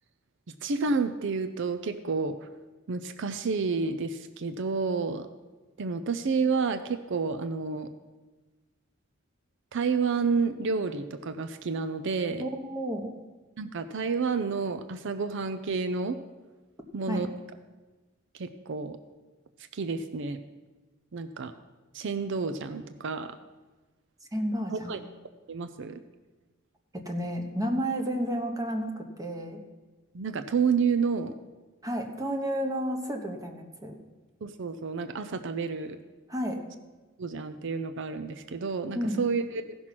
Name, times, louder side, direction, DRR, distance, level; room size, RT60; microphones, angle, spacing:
voice 1, 0.6-2.5 2.9-5.3 5.8-7.9 9.7-12.5 13.6-16.2 16.9-17.3 18.3-19.0 19.7-20.4 21.1-21.5 21.9-23.4 24.7-25.0 25.5-26.0 30.1-31.3 34.4-36.0 37.2-39.8, right 5 dB, 60° right, 10 dB, 0.5 m, -30 dB
voice 2, 12.4-13.1 17.1-17.3 24.3-24.9 26.9-29.6 31.8-34.0 36.3-36.6 38.9-39.2, equal, 15° right, 4 dB, 1.0 m, -31 dB
15.0 x 6.1 x 5.9 m, 1.3 s
head